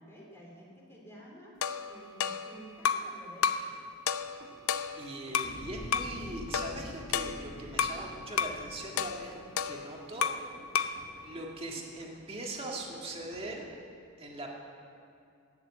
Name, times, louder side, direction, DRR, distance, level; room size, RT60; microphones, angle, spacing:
voice 1, 0.0-3.8, equal, 15° left, -3 dB, 3.0 m, -51 dB
sound 1, 1.6-3.1 3.4-3.7 4.1-5.6 5.9-6.2 6.5-8.0 8.4-8.6 9.0-10.5 10.7-11.0, left 7 dB, 85° left, 0.5 m, -32 dB
sound 2, 4.2-13.5, right 1 dB, 50° right, 1.2 m, -56 dB
voice 2, 5.0-10.3 11.2-13.7 14.2-14.5, right 2 dB, 25° right, -1 dB, 1.8 m, -41 dB
sound 3, 5.4-9.9 10.4-10.5, left 1 dB, 65° left, 1.4 m, -46 dB
18.0 x 7.2 x 7.4 m, 2.5 s
head